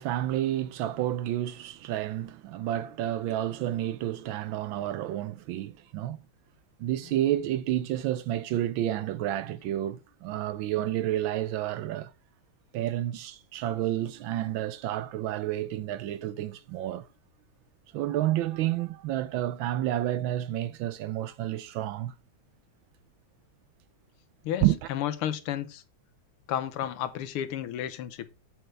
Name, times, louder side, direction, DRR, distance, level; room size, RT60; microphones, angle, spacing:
voice 1, 0.0-6.2 6.8-12.1 12.7-17.1 17.9-22.1 24.6-24.9, right 13 dB, 75° right, 1.2 m, -30 dB
voice 2, 24.4-25.8 26.5-28.3, left 11 dB, 90° left, 1.7 m, -32 dB
8.1 x 7.9 x 3.3 m
omnidirectional pair, 2.4 m